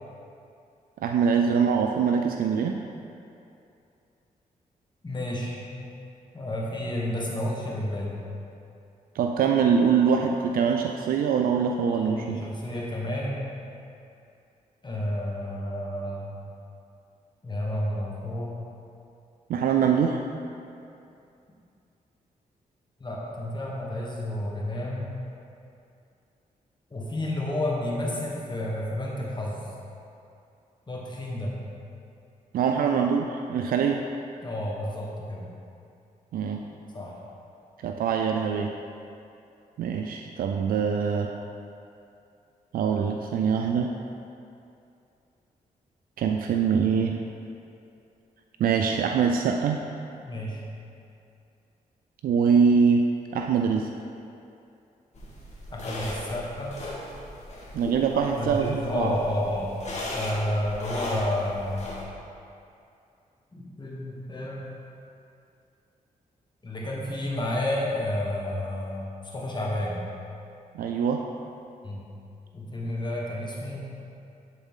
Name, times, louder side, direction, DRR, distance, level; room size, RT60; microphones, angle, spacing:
voice 1, 1.0-2.8 9.2-12.4 19.5-20.2 32.5-34.0 36.3-36.6 37.8-38.7 39.8-41.3 42.7-44.0 46.2-47.2 48.6-49.8 52.2-53.0 53.3-53.9 57.7-59.1 70.7-71.2, right 6 dB, 80° right, 3 dB, 0.4 m, -23 dB
voice 2, 5.0-5.8 6.3-8.2 11.9-13.4 14.8-16.3 17.4-18.5 23.0-25.1 26.9-29.6 30.9-31.6 34.4-35.4 36.9-37.2 50.2-50.7 55.7-56.8 58.1-59.8 60.1-61.9 63.5-64.7 66.6-70.0 71.8-72.0 72.5-73.9, left 1 dB, 30° left, -4 dB, 1.5 m, -31 dB
sound 1, 55.1-62.0, left 1 dB, 50° left, 1.6 m, -37 dB
11.0 x 4.0 x 3.8 m, 2.6 s
cardioid pair, 70°, 15 cm